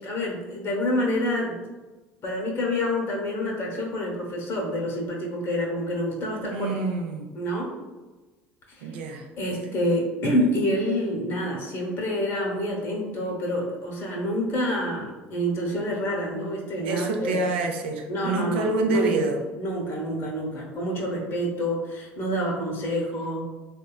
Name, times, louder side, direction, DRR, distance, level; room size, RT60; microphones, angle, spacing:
voice 1, 0.0-1.6 2.2-6.7 7.3-7.7 8.7-8.9 9.4-17.4 18.1-19.2 19.6-23.4, equal, 50° left, -2 dB, 0.7 m, -27 dB
voice 2, 6.5-7.3 8.8-9.3 16.8-19.4, right 3 dB, 85° right, 3 dB, 0.4 m, -27 dB
3.0 x 2.2 x 2.2 m, 1.2 s
hypercardioid pair, 75°, 6 cm